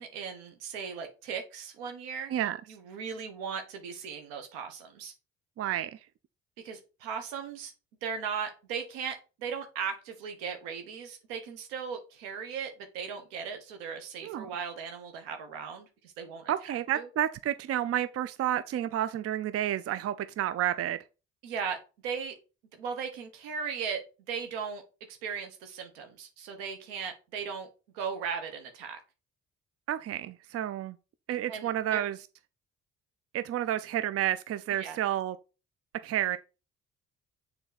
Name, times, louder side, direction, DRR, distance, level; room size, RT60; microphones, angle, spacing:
voice 1, 0.0-2.3 2.7-5.1 6.6-7.7 8.0-15.9 16.2-17.1 21.4-22.3 22.7-24.0 24.3-24.8 25.1-27.7 27.9-29.0 31.5-32.0 34.8-35.0, right 6 dB, 90° right, 1.3 m, -37 dB
voice 2, 5.6-6.0 14.2-14.5 16.5-21.0 29.9-31.0 31.3-32.2 33.3-35.4 36.0-36.4, right 12 dB, 50° right, 0.5 m, -30 dB
6.9 x 3.9 x 4.1 m
hypercardioid pair, 55°, 30 cm